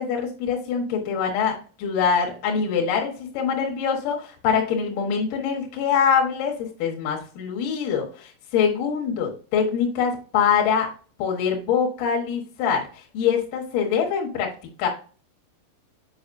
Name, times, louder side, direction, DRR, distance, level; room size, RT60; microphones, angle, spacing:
voice 1, 0.0-10.9 11.2-12.9 13.1-14.5 14.8-14.9, left 7 dB, 75° left, -1 dB, 1.9 m, -24 dB
6.9 x 5.3 x 2.6 m, 0.39 s
omnidirectional pair, 6.0 m